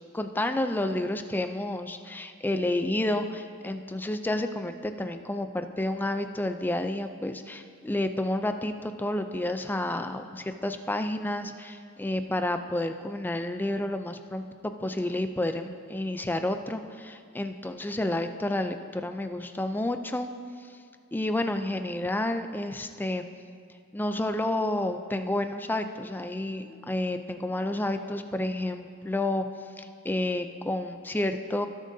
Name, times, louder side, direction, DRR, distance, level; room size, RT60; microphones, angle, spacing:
voice 1, 0.1-20.3 20.6-20.8 21.1-23.2 23.9-29.4 29.8-31.7, left 1 dB, 10° left, 8 dB, 0.4 m, -30 dB
18.0 x 7.4 x 2.7 m, 2.2 s
head